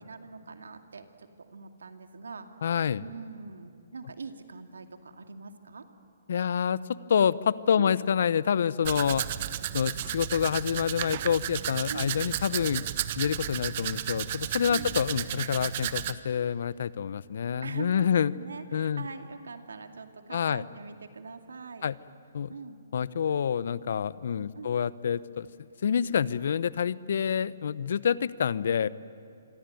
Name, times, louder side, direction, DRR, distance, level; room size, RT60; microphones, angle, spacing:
voice 1, 0.0-2.5 3.0-5.8 7.8-8.0 11.9-12.1 14.7-15.0 17.6-21.9 22.5-22.8 24.5-24.7, right 4 dB, 85° right, 6 dB, 2.4 m, -42 dB
voice 2, 2.6-3.0 6.3-9.3 9.7-12.8 13.2-18.3 18.7-19.1 20.3-20.6 21.8-22.0 22.3-22.5 22.9-25.5 25.8-28.9, left 7 dB, 65° left, 19 dB, 0.8 m, -27 dB
Domestic sounds home sounds, 8.8-16.1, right 12 dB, 45° right, 1.1 m, -33 dB
27.0 x 23.0 x 9.3 m, 2.7 s
hypercardioid pair, 140°, 0 cm